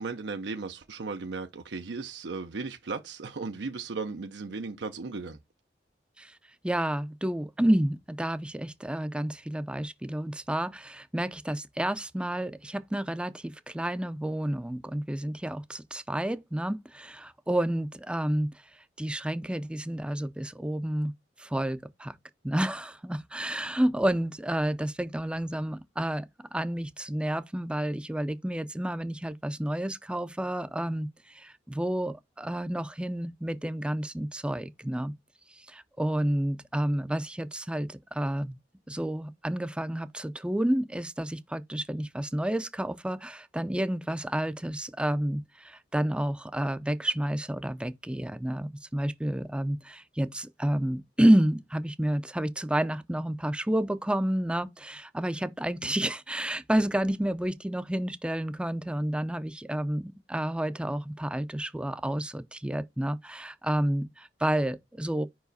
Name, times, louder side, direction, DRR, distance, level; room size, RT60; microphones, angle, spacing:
voice 1, 0.0-5.4, right 4 dB, 90° right, 0.6 m, -36 dB
voice 2, 6.6-18.5 19.0-21.1 21.4-22.2 22.4-26.3 26.5-35.1 35.5-38.6 38.9-65.3, right 1 dB, 5° right, 0.4 m, -30 dB
5.0 x 4.7 x 4.0 m
head